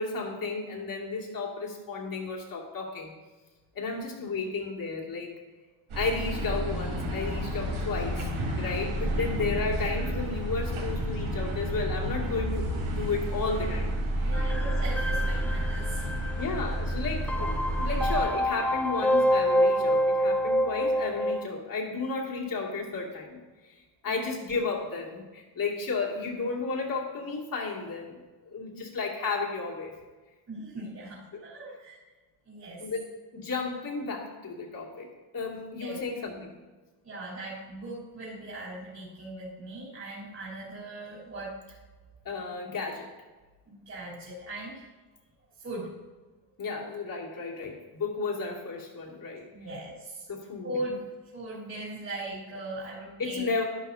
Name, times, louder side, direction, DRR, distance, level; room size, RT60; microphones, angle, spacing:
voice 1, 0.0-3.1 3.7-5.3 5.9-8.3 8.6-14.5 16.4-23.7 24.0-29.9 32.8-33.0 33.3-35.1 35.3-36.5 42.2-43.1 46.6-49.5 50.3-50.7 53.2-53.6, left 4 dB, 40° left, -2 dB, 2.7 m, -33 dB
sound 1, 5.9-18.2, equal, 70° right, 3.9 m, -30 dB
voice 2, 14.2-16.5 28.7-28.8 30.5-32.0 32.5-32.8 35.8-36.0 37.0-41.6 43.7-44.8 45.6-45.9 49.5-50.3 50.6-51.0 51.3-53.4, right 1 dB, 30° right, -9 dB, 3.7 m, -39 dB
sound 2, 14.3-21.4, equal, 5° left, 0.5 m, -27 dB
11.5 x 11.5 x 2.8 m, 1.3 s
cardioid pair, 115°, 50 cm